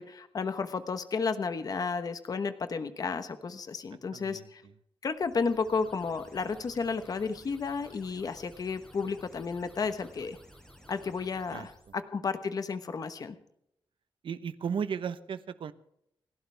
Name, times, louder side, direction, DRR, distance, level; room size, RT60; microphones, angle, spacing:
voice 1, 0.0-4.6 5.0-10.4 10.9-13.4, left 5 dB, 40° left, 10 dB, 1.2 m, -32 dB
voice 2, 4.1-4.5 11.5-11.7 14.2-15.7, right 7 dB, 65° right, 12 dB, 1.0 m, -35 dB
sound 1, 5.2-12.0, equal, 5° left, 4.7 m, -55 dB
29.5 x 12.0 x 3.5 m, 0.75 s
wide cardioid pair, 170°, 9 cm